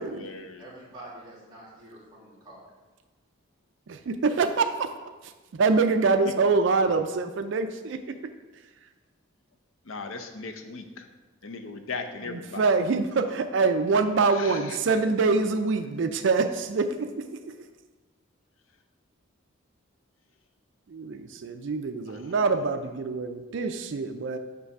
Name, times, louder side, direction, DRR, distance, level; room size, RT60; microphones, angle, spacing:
voice 1, 0.0-0.6 9.9-11.0 11.4-12.6 14.3-14.8 22.1-22.4, left 4 dB, 75° left, 6 dB, 0.6 m, -38 dB
voice 2, 0.6-2.7, right 1 dB, 20° right, -6 dB, 1.9 m, -46 dB
voice 3, 3.9-8.0 12.3-17.5 20.9-24.4, right 4 dB, 60° right, 8 dB, 0.4 m, -25 dB
6.8 x 3.3 x 5.9 m, 1.2 s
head